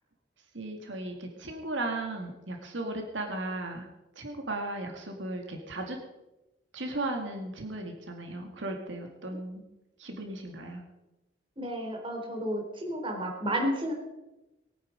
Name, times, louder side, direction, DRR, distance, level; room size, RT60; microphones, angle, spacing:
voice 1, 0.5-3.9 4.2-6.0 6.7-9.6 10.0-10.8, right 2 dB, 85° right, 3 dB, 2.1 m, -36 dB
voice 2, 11.6-13.9, equal, 30° right, 1 dB, 3.8 m, -31 dB
21.5 x 9.4 x 5.2 m, 0.99 s
head